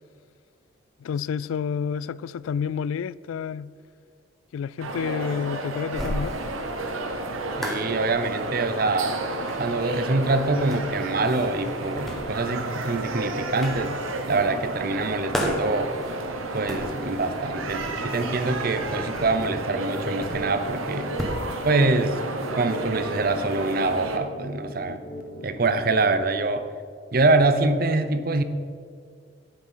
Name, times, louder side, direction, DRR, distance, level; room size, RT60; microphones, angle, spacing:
voice 1, 1.0-3.7 4.5-6.4, left 7 dB, 85° left, 0.3 m, -29 dB
sound 1, 4.8-24.2, right 2 dB, 85° right, 1.1 m, -32 dB
sound 2, 5.9-21.5, equal, ahead, 1.4 m, -37 dB
voice 2, 7.6-9.2 9.6-13.9 14.3-15.9 16.5-21.1 21.6-22.2 22.6-25.0 25.4-26.7 27.1-28.4, right 3 dB, 45° right, 0.7 m, -24 dB
sound 3, 16.9-26.0, left 1 dB, 45° left, 1.0 m, -41 dB
9.7 x 8.8 x 5.6 m
head